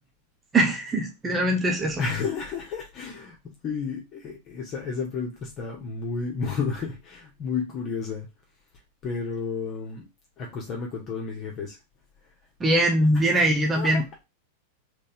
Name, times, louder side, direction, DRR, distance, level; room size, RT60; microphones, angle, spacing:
voice 1, 0.5-2.0 12.6-14.2, right 1 dB, 15° right, 2 dB, 1.0 m, -22 dB
voice 2, 2.0-8.3 9.0-10.1 10.4-11.8 13.1-13.2 13.8-14.0, left 5 dB, 30° left, -1 dB, 1.3 m, -32 dB
4.1 x 3.4 x 3.5 m, 0.23 s
figure-of-eight pair, 90°, 0 cm